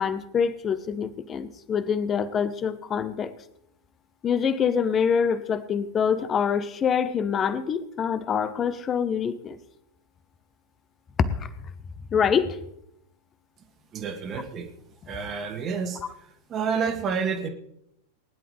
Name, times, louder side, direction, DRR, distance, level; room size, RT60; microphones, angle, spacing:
voice 1, 0.0-3.3 4.2-9.6 11.3-11.5 12.1-12.6, left 7 dB, 25° left, 14 dB, 1.0 m, -25 dB
voice 2, 13.9-14.7 15.1-16.0 16.5-17.5, right 6 dB, 30° right, 6 dB, 1.8 m, -29 dB
20.0 x 11.0 x 3.4 m, 0.75 s
figure-of-eight pair, 90°, 0 cm